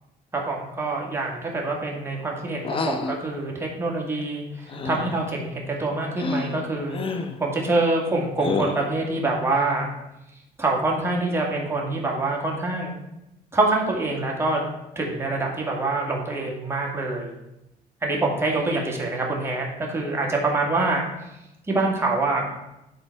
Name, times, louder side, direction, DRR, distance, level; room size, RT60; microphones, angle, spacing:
voice 1, 0.3-7.0 7.4-9.9 10.6-13.0 13.5-14.6 15.0-17.3 18.0-21.0 21.7-22.5, right 2 dB, 15° right, -2 dB, 1.9 m, -25 dB
sound 1, 2.6-3.2 4.7-5.2 6.2-6.5 6.9-7.4 8.4-8.9, left 4 dB, 30° left, 0.7 m, -28 dB
10.5 x 3.9 x 4.5 m, 0.91 s
cardioid pair, 110°, 17 cm